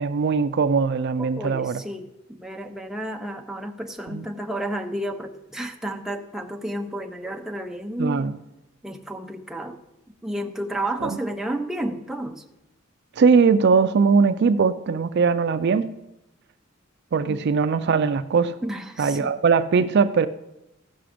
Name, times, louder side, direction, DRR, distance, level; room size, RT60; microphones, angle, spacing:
voice 1, 0.0-1.8 4.1-4.2 8.0-8.4 11.0-11.1 13.2-15.9 17.1-18.6 19.0-20.3, right 5 dB, 55° right, 11 dB, 0.4 m, -20 dB
voice 2, 1.2-8.3 8.8-9.8 10.2-12.4 17.3-17.5 18.6-19.3, right 1 dB, ahead, 3 dB, 0.7 m, -31 dB
15.0 x 5.9 x 5.0 m, 0.89 s
head